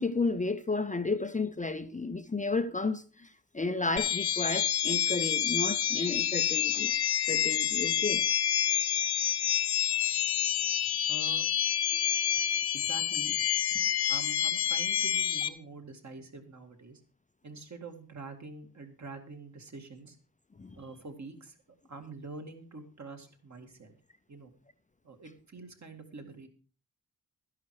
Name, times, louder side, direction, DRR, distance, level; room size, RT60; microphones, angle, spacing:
voice 1, 0.0-6.9 7.2-8.2 9.2-9.3 9.7-11.1 11.9-12.0 20.6-20.8, left 3 dB, 20° left, 0.6 m, -33 dB
sound 1, 4.0-15.5, left 9 dB, 80° left, 0.9 m, -28 dB
voice 2, 11.1-11.4 12.7-13.4 13.7-17.0 17.4-20.2 20.7-21.6 21.9-23.9 24.3-24.5 25.0-26.5, right 3 dB, 45° right, 2.3 m, -46 dB
12.5 x 11.0 x 4.8 m
wide cardioid pair, 145°, 38 cm